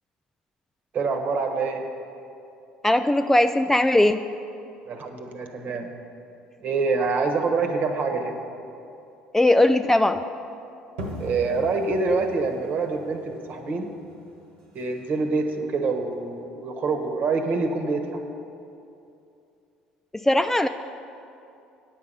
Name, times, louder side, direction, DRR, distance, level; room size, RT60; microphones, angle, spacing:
voice 1, 0.9-1.8 4.9-5.9 6.6-8.4 11.2-13.9 14.7-18.0, right 4 dB, 50° right, 5 dB, 1.2 m, -26 dB
voice 2, 2.8-4.2 9.3-10.2 20.2-20.7, left 1 dB, 10° left, 9 dB, 0.3 m, -19 dB
sound 1, 11.0-16.4, equal, 80° right, 1.3 m, -41 dB
9.5 x 7.3 x 5.5 m, 2.7 s
hypercardioid pair, 65°, 4 cm